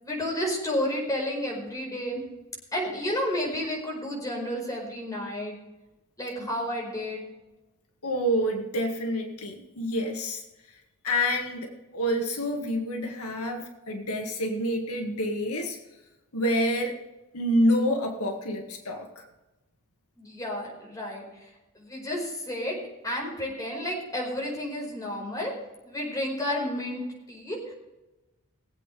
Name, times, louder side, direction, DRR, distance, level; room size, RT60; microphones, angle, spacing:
voice 1, 0.0-2.2 2.7-5.6 6.2-7.2 20.2-21.2 21.8-22.8 23.0-25.5 25.8-27.0 27.3-27.7, left 1 dB, 15° left, -2 dB, 4.9 m, -31 dB
voice 2, 8.0-10.4 11.0-15.8 16.3-17.0 17.3-19.3, equal, 80° left, 2 dB, 1.8 m, -27 dB
22.0 x 8.4 x 3.4 m, 1.0 s
head